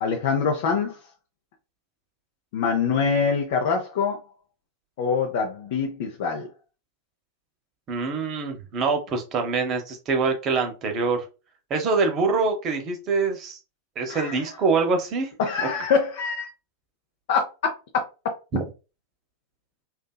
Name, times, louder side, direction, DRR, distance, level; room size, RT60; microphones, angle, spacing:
voice 1, 0.0-1.0 2.5-4.2 5.0-6.5 14.1-14.4 15.4-16.5 17.3-17.5, left 5 dB, 50° left, 0.4 m, -24 dB
voice 2, 7.9-11.3 11.7-13.6 14.0-15.3 18.5-18.6, right 4 dB, 30° right, 0.6 m, -24 dB
2.6 x 2.3 x 2.2 m
figure-of-eight pair, 90°, 0 cm